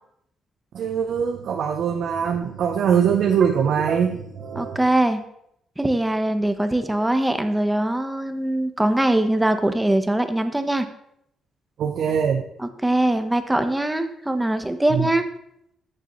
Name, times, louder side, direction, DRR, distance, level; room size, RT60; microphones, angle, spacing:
voice 1, 0.7-4.8 11.8-12.4 14.9-15.1, right 7 dB, 70° right, 3 dB, 0.8 m, -22 dB
voice 2, 4.5-5.2 5.8-10.9 12.6-15.3, right 1 dB, 10° right, 8 dB, 1.1 m, -22 dB
15.0 x 6.7 x 3.2 m, 0.75 s
cardioid pair, 90°, 0 cm